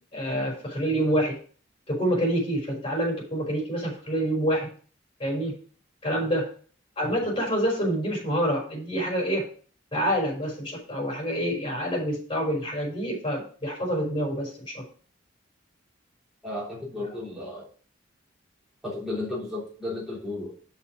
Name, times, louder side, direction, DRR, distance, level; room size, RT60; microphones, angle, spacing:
voice 1, 0.1-1.4 1.9-4.7 5.2-5.5 6.0-6.5 7.0-9.5 9.9-14.8, equal, 30° left, -2 dB, 5.3 m, -27 dB
voice 2, 16.4-17.7 18.8-20.5, left 2 dB, ahead, -7 dB, 3.5 m, -34 dB
7.1 x 6.2 x 6.1 m, 0.43 s
head